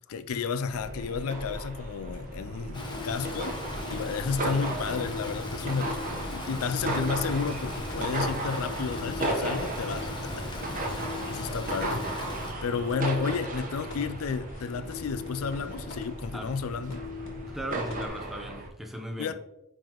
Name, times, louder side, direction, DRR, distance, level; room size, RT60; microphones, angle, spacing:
voice 1, 0.1-3.6 3.9-10.5 10.8-12.0 12.6-17.0 19.2-19.3, left 5 dB, 90° left, 0.4 m, -32 dB
sound 1, 0.7-18.7, right 2 dB, 40° right, 1.1 m, -36 dB
sound 2, 2.1-18.1, left 2 dB, 65° left, 2.1 m, -40 dB
Stream, 2.7-12.5, left 2 dB, 20° left, 1.0 m, -39 dB
voice 2, 17.4-19.3, equal, ahead, 0.7 m, -37 dB
9.9 x 4.0 x 3.0 m
head